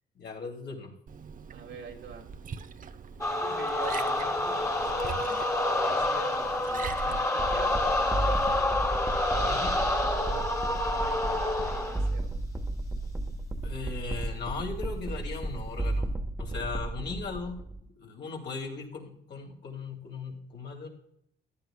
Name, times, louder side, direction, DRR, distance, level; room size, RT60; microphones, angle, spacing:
voice 1, 0.1-0.9 9.3-9.7 13.6-16.1 16.4-20.9, left 4 dB, 60° left, 0 dB, 2.8 m, -38 dB
Liquid, 1.1-7.2, right 6 dB, 45° right, 0.7 m, -42 dB
voice 2, 1.5-2.3 3.3-5.5 5.8-8.8 9.3-12.3, right 5 dB, 80° right, 1 dB, 2.4 m, -44 dB
sound 1, 3.2-12.1, left 2 dB, 15° left, 1.7 m, -28 dB
sound 2, 7.4-17.8, right 2 dB, 10° right, 1.2 m, -33 dB
14.5 x 10.5 x 2.3 m, 0.72 s
cardioid pair, 90°, 20 cm